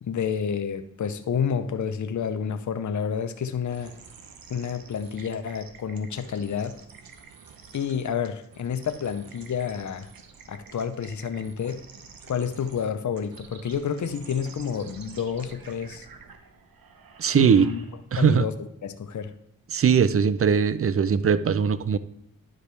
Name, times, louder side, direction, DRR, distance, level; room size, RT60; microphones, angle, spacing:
voice 1, 0.0-3.9 4.5-6.8 7.7-10.1 10.5-11.8 12.3-16.1 17.3-17.8 18.2-19.3, left 7 dB, 55° left, 9 dB, 0.7 m, -29 dB
sound 1, 3.7-18.2, right 5 dB, 75° right, 0.9 m, -49 dB
voice 2, 17.2-17.7 18.1-18.4 19.7-22.0, right 7 dB, 40° right, 15 dB, 0.5 m, -20 dB
11.0 x 4.9 x 3.3 m, 0.74 s
cardioid pair, 60°, 36 cm